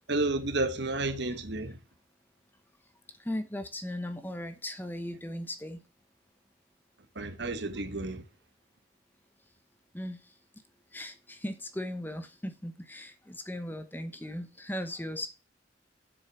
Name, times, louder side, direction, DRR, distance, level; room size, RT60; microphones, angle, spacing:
voice 1, 0.1-1.8 7.1-8.2, right 2 dB, 60° right, 1.3 m, -31 dB
voice 2, 3.2-5.8 9.9-10.2 10.9-15.3, left 1 dB, 10° left, 1.0 m, -37 dB
7.7 x 6.4 x 6.1 m
head